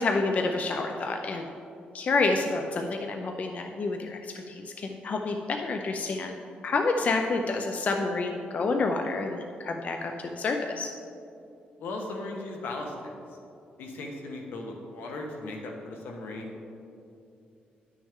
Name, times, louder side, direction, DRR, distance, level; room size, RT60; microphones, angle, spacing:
voice 1, 0.0-1.5 1.9-6.4 6.6-10.9, left 3 dB, 45° left, 4 dB, 0.5 m, -28 dB
voice 2, 11.8-13.1 13.8-16.5, left 2 dB, 85° left, 2 dB, 1.2 m, -37 dB
10.0 x 6.3 x 3.6 m, 2.6 s
cardioid pair, 110°, 3 cm